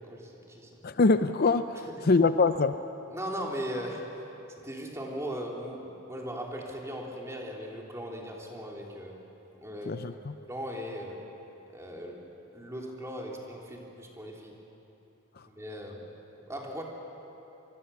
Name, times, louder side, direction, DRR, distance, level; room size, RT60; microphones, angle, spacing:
voice 1, 0.0-0.7 1.9-2.1 3.1-4.0 4.6-9.2 9.6-10.0 10.5-11.2 11.7-14.5 15.5-16.1 16.5-16.8, equal, 15° right, -1 dB, 3.2 m, -38 dB
voice 2, 0.8-2.7 9.9-10.4, left 3 dB, 45° left, 10 dB, 0.6 m, -24 dB
25.5 x 23.5 x 7.0 m, 3.0 s
head